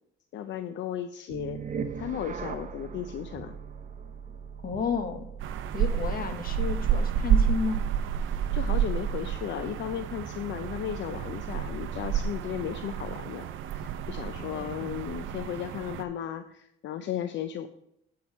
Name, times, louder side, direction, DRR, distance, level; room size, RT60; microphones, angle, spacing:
voice 1, 0.3-3.5 8.2-17.7, left 10 dB, 65° left, 9 dB, 0.5 m, -35 dB
sound 1, 1.3-12.4, right 6 dB, 40° right, 0.8 m, -41 dB
voice 2, 4.6-5.3 5.7-7.9 14.4-14.9, left 5 dB, 45° left, 7 dB, 1.2 m, -32 dB
sound 2, 5.4-16.0, right 8 dB, 80° right, 0.6 m, -30 dB
9.2 x 4.7 x 5.3 m, 0.77 s
cardioid pair, 90°, 20 cm